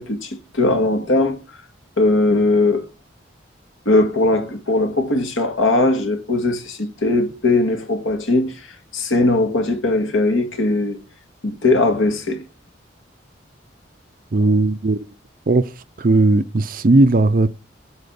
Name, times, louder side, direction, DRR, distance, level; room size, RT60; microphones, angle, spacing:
voice 1, 0.0-1.4 2.0-2.9 3.9-8.7 8.9-11.0 11.4-12.4, left 2 dB, 85° left, 2.0 m, -19 dB
voice 2, 14.3-15.0 15.5-15.7 16.0-17.5, right 2 dB, 45° right, 0.5 m, -16 dB
8.9 x 4.2 x 6.9 m
head